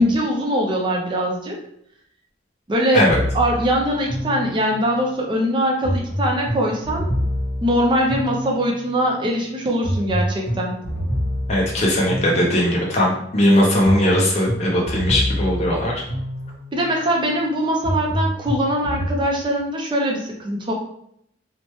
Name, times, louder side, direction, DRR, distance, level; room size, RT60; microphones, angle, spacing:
voice 1, 0.0-1.6 2.7-3.1 3.3-7.1 7.6-10.7 16.7-20.7, equal, 25° right, 0 dB, 0.4 m, -22 dB
sound 1, 3.1-5.0 5.8-8.9 9.8-12.9 13.8-16.9 17.8-19.2, equal, 55° left, 1.1 m, -26 dB
voice 2, 11.5-16.0, left 1 dB, 35° left, -2 dB, 0.5 m, -19 dB
2.9 x 2.1 x 3.0 m, 0.72 s
head